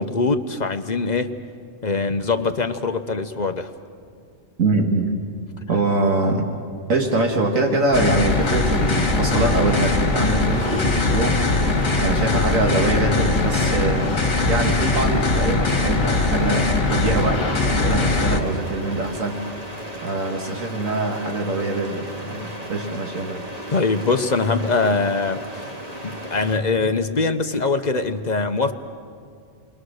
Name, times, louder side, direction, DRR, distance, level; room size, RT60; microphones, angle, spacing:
voice 1, 0.0-1.3 1.8-3.7 23.7-25.7 26.0-28.7, left 3 dB, 40° left, 7 dB, 0.9 m, -22 dB
voice 2, 4.6-5.1 5.7-6.5 6.9-11.4 12.0-19.4 20.0-23.5, right 2 dB, 85° right, 1 dB, 2.2 m, -23 dB
sound 1, 7.9-18.4, left 3 dB, 65° left, 2.2 m, -21 dB
sound 2, 8.3-26.6, right 1 dB, 30° right, 2.1 m, -36 dB
28.5 x 22.0 x 6.5 m, 2.3 s
omnidirectional pair, 1.4 m